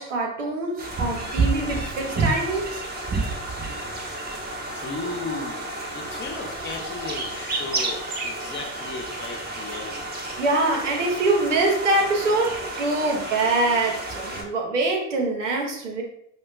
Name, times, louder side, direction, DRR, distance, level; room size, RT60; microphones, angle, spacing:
voice 1, 0.0-2.8 10.4-16.0, right 2 dB, 85° right, 1 dB, 0.7 m, -24 dB
sound 1, 0.8-14.4, right 2 dB, 25° right, 0.9 m, -30 dB
voice 2, 4.7-10.0, left 3 dB, 30° left, 2 dB, 0.8 m, -35 dB
5.0 x 2.2 x 2.3 m, 0.73 s
figure-of-eight pair, 55°, 36 cm